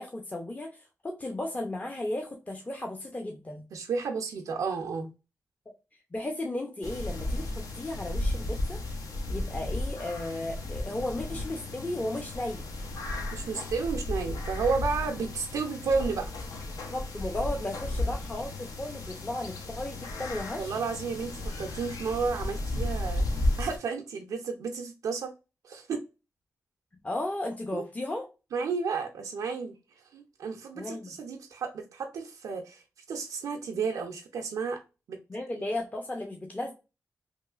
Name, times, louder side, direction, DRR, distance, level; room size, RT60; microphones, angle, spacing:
voice 1, 0.0-3.6 5.7-5.8 6.1-8.8 9.3-12.7 16.9-20.8 27.0-28.3 30.8-31.2 35.3-36.7, left 1 dB, 25° left, 3 dB, 0.5 m, -35 dB
voice 2, 3.7-5.1 13.3-16.3 20.6-23.2 23.6-25.3 25.6-26.0 27.7-27.8 28.5-29.7 30.1-32.8 33.1-34.8 35.1-35.2, right 5 dB, 85° right, 3 dB, 0.4 m, -32 dB
sound 1, 6.8-23.8, left 1 dB, 80° left, 0.5 m, -34 dB
2.9 x 2.4 x 2.3 m, 0.29 s
cardioid pair, 50°, 6 cm